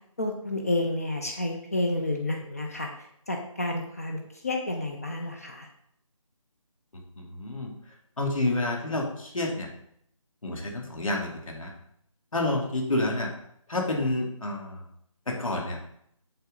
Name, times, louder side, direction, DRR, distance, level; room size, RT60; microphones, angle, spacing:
voice 1, 0.2-2.9 3.3-5.7, left 2 dB, 25° left, 2 dB, 0.8 m, -30 dB
voice 2, 7.2-7.7 8.2-9.7 10.4-11.7 12.3-13.3 13.7-14.8 15.3-15.8, left 2 dB, 70° left, 0 dB, 2.8 m, -29 dB
7.8 x 7.1 x 4.1 m, 0.71 s
figure-of-eight pair, 175°, 18 cm